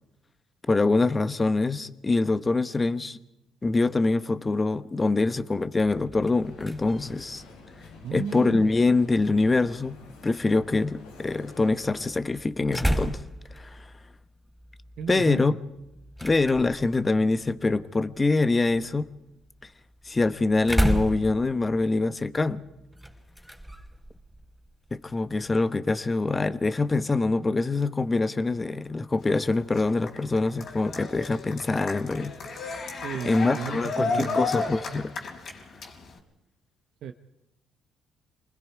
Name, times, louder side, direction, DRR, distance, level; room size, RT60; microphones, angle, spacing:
voice 1, 0.7-3.2 3.6-7.4 8.1-10.0 10.2-13.2 13.5-13.8 15.1-15.6 16.2-19.1 20.0-22.6 24.9-32.7 33.2-35.1, left 3 dB, 25° left, 1.2 m, -24 dB
sound 1, 5.8-25.7, right 1 dB, 5° right, 5.0 m, -35 dB
sound 2, 6.4-12.0, left 3 dB, 90° left, 3.9 m, -50 dB
voice 2, 8.0-8.7 15.0-15.6 33.0-34.4 37.0-37.1, right 8 dB, 70° right, 0.9 m, -34 dB
Cheering, 29.2-36.2, left 3 dB, 55° left, 4.2 m, -33 dB
28.0 x 20.5 x 4.7 m
supercardioid pair, 65°, 0 cm